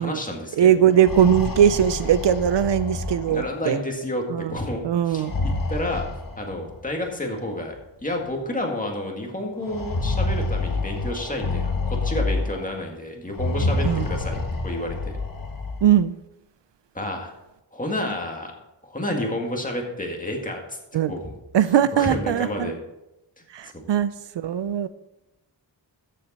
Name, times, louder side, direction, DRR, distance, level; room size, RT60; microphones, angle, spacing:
voice 1, 0.0-0.9 3.3-4.8 5.1-6.0 6.4-7.8 8.0-15.2 16.9-17.3 17.7-18.5 18.8-21.3 21.9-22.8 23.4-23.9, left 1 dB, 20° left, 1.9 m, -30 dB
voice 2, 0.6-3.8 4.3-4.6 4.8-5.3 13.9-14.1 15.8-16.2 20.9-21.1 21.5-22.7 23.5-24.9, right 9 dB, 70° right, 0.5 m, -20 dB
sound 1, 0.8-3.7 5.1-6.8 7.8-7.9 8.2-8.3 9.6-12.7 13.3-15.9, left 2 dB, 45° left, 1.5 m, -28 dB
13.5 x 7.6 x 4.2 m
wide cardioid pair, 150°, 45 cm